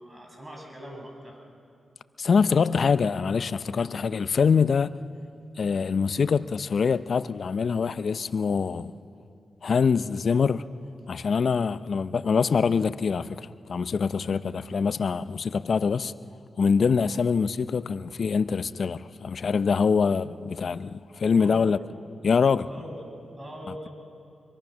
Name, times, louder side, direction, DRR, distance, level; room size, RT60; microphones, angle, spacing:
voice 1, 0.0-1.4 2.4-2.6 21.3-21.8 22.7-23.9, equal, 30° right, 6.1 m, -41 dB
voice 2, 2.2-4.9 5.6-8.9 9.6-10.6 11.1-16.1 16.6-21.8 22.2-22.7, left 5 dB, 65° left, 0.6 m, -24 dB
24.5 x 23.0 x 6.3 m
cardioid pair, 55°, 0 cm